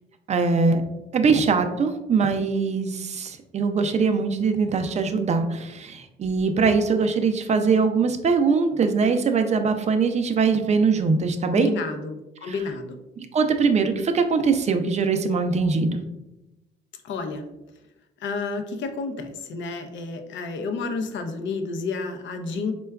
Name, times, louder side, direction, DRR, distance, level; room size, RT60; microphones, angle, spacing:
voice 1, 0.3-0.8 1.1-11.7 12.4-12.6 13.2-16.0, right 5 dB, 35° right, 7 dB, 0.4 m, -22 dB
voice 2, 11.5-13.0 17.0-17.4 18.2-22.7, left 4 dB, 70° left, 6 dB, 0.5 m, -30 dB
4.3 x 2.2 x 2.2 m, 0.95 s
cardioid pair, 90°, 20 cm